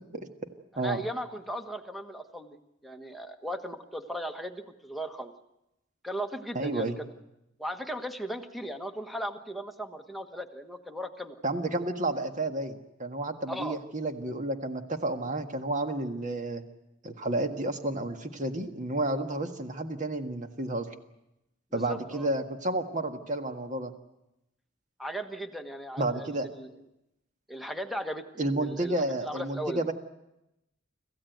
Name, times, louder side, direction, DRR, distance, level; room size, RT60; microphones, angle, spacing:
voice 1, 0.7-5.3 6.0-7.1 7.6-11.4 13.5-13.8 21.7-22.3 25.0-26.7 27.5-28.9 29.2-29.8, equal, ahead, 7 dB, 1.3 m, -37 dB
voice 2, 6.5-7.0 11.4-16.6 17.0-20.9 21.7-23.9 26.0-26.5 28.4-29.9, right 2 dB, 40° right, 6 dB, 1.7 m, -31 dB
26.5 x 15.0 x 9.3 m, 0.89 s
head